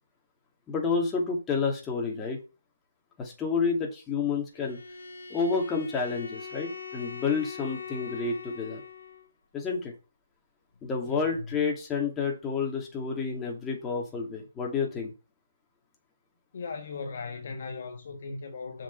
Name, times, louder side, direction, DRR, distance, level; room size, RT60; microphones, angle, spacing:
voice 1, 0.7-2.4 3.2-4.8 5.3-8.8 9.5-9.9 10.8-15.1, left 5 dB, 10° left, 2.5 m, -29 dB
Bowed string instrument, 4.5-9.3, left 5 dB, 70° left, 2.0 m, -42 dB
voice 2, 11.0-11.5 16.5-18.8, left 4 dB, 50° left, 1.5 m, -38 dB
7.5 x 5.4 x 6.0 m
figure-of-eight pair, 150°, 0 cm